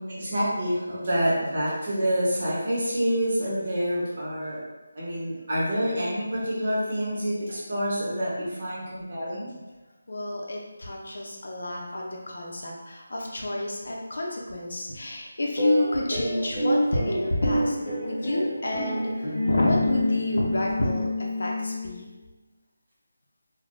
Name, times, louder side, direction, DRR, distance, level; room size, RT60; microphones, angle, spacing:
voice 1, 0.1-4.6 4.9-9.5, equal, 40° right, -7 dB, 1.0 m, -27 dB
voice 2, 10.1-17.7 18.0-22.0, left 1 dB, 65° left, -2 dB, 0.6 m, -29 dB
sound 1, 15.5-22.1, left 1 dB, 25° left, 1.0 m, -28 dB
3.5 x 2.2 x 2.5 m, 1.1 s
figure-of-eight pair, 170°, 0 cm